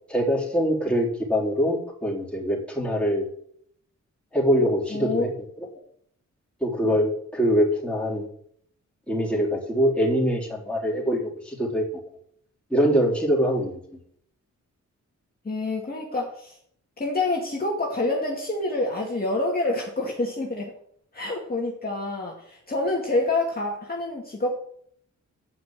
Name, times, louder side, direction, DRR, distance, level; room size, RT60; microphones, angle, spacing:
voice 1, 0.1-3.2 4.3-5.3 6.6-8.3 9.1-11.9 12.7-13.8, equal, 5° left, -3 dB, 4.0 m, -23 dB
voice 2, 4.9-5.3 15.4-16.6 17.0-20.7 21.1-24.6, left 2 dB, 30° left, -3 dB, 2.3 m, -27 dB
9.7 x 6.1 x 7.7 m, 0.65 s
cardioid pair, 95°, 30 cm